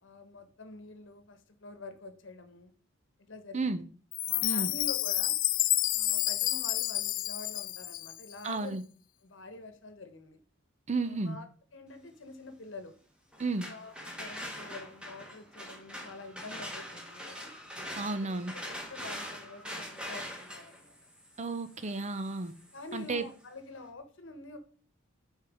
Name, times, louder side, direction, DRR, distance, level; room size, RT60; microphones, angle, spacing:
voice 1, 0.0-2.7 3.2-3.8 4.3-5.4 5.9-8.8 9.2-10.4 11.0-11.5 11.7-12.9 13.5-17.5 18.1-20.9 22.7-24.6, left 2 dB, 65° left, 1.1 m, -47 dB
Chime, 4.1-8.3, left 16 dB, 45° left, 0.3 m, -30 dB
voice 2, 8.4-8.8 10.9-11.4 13.4-13.7 18.0-18.5 21.4-22.5 22.9-23.2, right 3 dB, 35° right, 0.6 m, -32 dB
sound 1, 13.3-23.2, equal, 5° right, 1.5 m, -43 dB
6.7 x 4.6 x 4.9 m
head